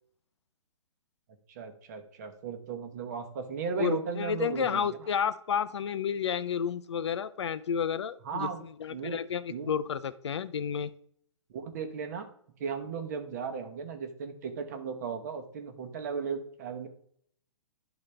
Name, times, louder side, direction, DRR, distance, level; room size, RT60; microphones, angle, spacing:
voice 1, 1.5-4.9 8.2-8.6 8.9-9.2 9.5-9.7 11.5-12.3 12.6-16.9, right 6 dB, 30° right, 6 dB, 0.9 m, -36 dB
voice 2, 3.8-8.5 8.8-10.9, left 7 dB, 55° left, 14 dB, 0.5 m, -31 dB
11.5 x 4.0 x 3.2 m, 0.64 s
hypercardioid pair, 165°, 17 cm